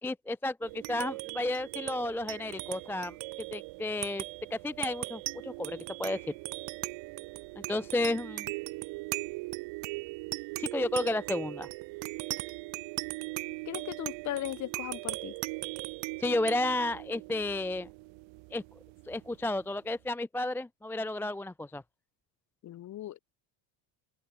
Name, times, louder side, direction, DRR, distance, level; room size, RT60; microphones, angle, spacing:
voice 1, 0.0-3.2 3.5-4.2 4.5-6.3 7.6-8.5 10.6-11.7 16.2-17.9 18.5-18.6 19.1-21.8, left 2 dB, 5° left, 0.6 m, -32 dB
sound 1, 0.6-19.5, right 27 dB, 60° right, 3.0 m, -39 dB
voice 2, 13.7-15.3 22.6-23.2, left 13 dB, 35° left, 2.2 m, -37 dB
open air
cardioid pair, 175°, 50 cm